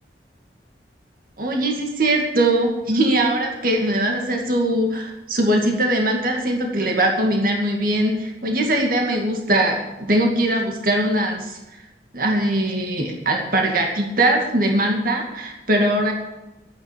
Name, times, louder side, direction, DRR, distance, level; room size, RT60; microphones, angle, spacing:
voice 1, 1.4-11.8 12.1-16.1, right 1 dB, 55° right, 1 dB, 2.3 m, -21 dB
13.0 x 9.5 x 8.4 m, 1.0 s
head